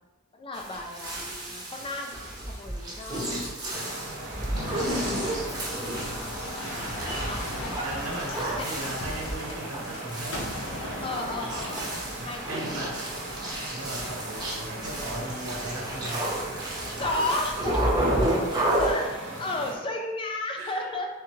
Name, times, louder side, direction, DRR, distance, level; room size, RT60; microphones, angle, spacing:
voice 1, 0.3-2.1 2.4-3.3 4.4-7.7 8.4-8.7 11.0-11.8 12.2-12.4 12.8-12.9 17.0-18.0 18.8-21.1, left 2 dB, 25° left, 2 dB, 0.4 m, -34 dB
sound 1, 0.5-18.9, right 1 dB, 20° right, 0.8 m, -31 dB
sound 2, 3.7-19.8, right 1 dB, 60° right, 0.9 m, -39 dB
sound 3, 4.5-13.9 14.6-15.1 16.2-16.9, left 1 dB, 70° left, 0.8 m, -39 dB
voice 2, 7.8-10.4 12.5-12.9 13.7-16.2 18.5-19.3 20.6-20.9, right 2 dB, 90° right, -1 dB, 1.0 m, -37 dB
3.5 x 3.4 x 3.1 m, 1.1 s
head